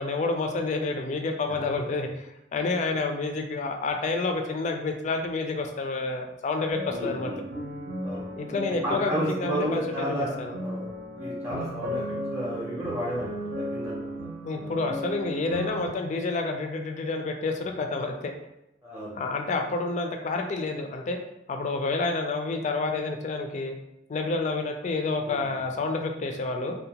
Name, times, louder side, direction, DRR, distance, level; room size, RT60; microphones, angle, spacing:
voice 1, 0.0-7.3 8.3-10.5 14.4-18.3 19.1-21.2 21.5-23.8 24.1-26.8, left 3 dB, 40° left, 4 dB, 0.3 m, -29 dB
sound 1, 6.7-15.9, equal, 80° right, 0.7 m, -36 dB
voice 2, 6.9-7.4 8.0-8.2 8.8-10.3 10.6-10.9 11.2-12.0 12.3-14.7 18.8-19.2 25.2-25.7, right 1 dB, 10° right, -8 dB, 0.6 m, -32 dB
2.7 x 2.1 x 2.8 m, 0.86 s
head